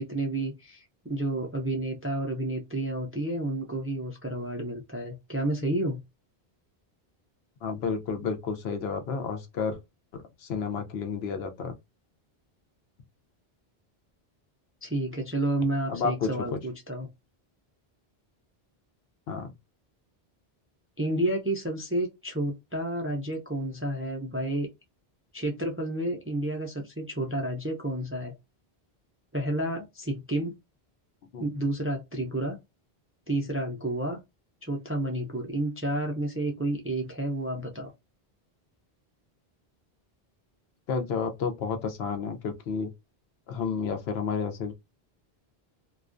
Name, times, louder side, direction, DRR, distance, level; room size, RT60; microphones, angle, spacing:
voice 1, 0.0-6.0 14.8-17.1 21.0-24.7 25.3-28.3 29.3-30.6 31.4-32.6 33.3-34.2 34.6-37.9, right 1 dB, 20° right, 0.3 m, -30 dB
voice 2, 7.6-9.8 10.1-11.7 15.9-16.6 19.3-19.5 31.3-31.5 40.9-42.9 43.5-44.7, left 5 dB, 80° left, 0.9 m, -31 dB
2.4 x 2.2 x 2.4 m
omnidirectional pair, 1.0 m